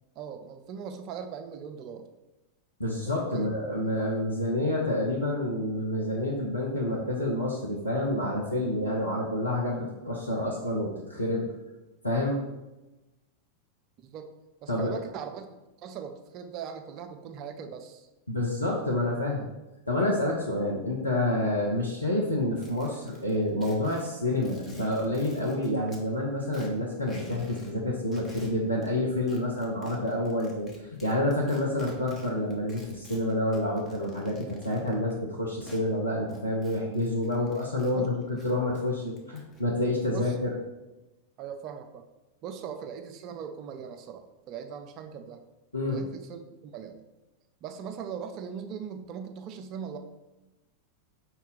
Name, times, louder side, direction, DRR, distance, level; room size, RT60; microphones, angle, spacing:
voice 1, 0.2-2.1 3.3-3.7 8.9-9.0 14.1-14.3 14.6-15.5 15.8-18.1 37.9-38.1 40.1-40.4 41.4-42.0 42.4-45.4 45.9-47.0 47.6-50.0, right 7 dB, 40° right, 6 dB, 0.4 m, -40 dB
voice 2, 2.8-11.5 12.0-12.4 14.7-14.9 18.3-19.5 19.9-40.5 45.7-46.0, left 1 dB, 85° left, -2 dB, 0.6 m, -28 dB
sound 1, 22.6-26.0 26.4-27.7 28.0-28.9 29.3-35.8 36.3-37.9 38.2-39.6, left 1 dB, 20° left, 0.9 m, -50 dB
5.3 x 2.3 x 3.8 m, 1.0 s
figure-of-eight pair, 90°, 0 cm